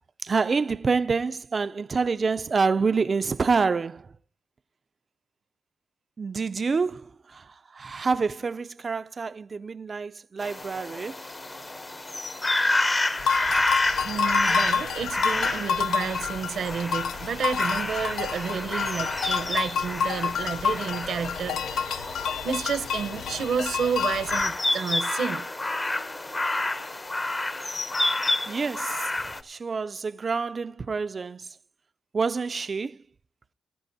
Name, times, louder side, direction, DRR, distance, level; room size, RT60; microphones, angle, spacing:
voice 1, 0.2-4.1 6.2-11.2 28.5-29.1 29.4-31.6 32.1-33.0, right 4 dB, 45° right, 0.4 m, -27 dB
sound 1, 10.4-29.4, left 2 dB, 30° left, 0.9 m, -29 dB
sound 2, 13.2-24.4, left 6 dB, 85° left, 0.5 m, -29 dB
voice 2, 14.0-22.1 22.4-25.5, right 6 dB, 75° right, 0.8 m, -30 dB
21.0 x 9.0 x 2.7 m
cardioid pair, 60°, 0 cm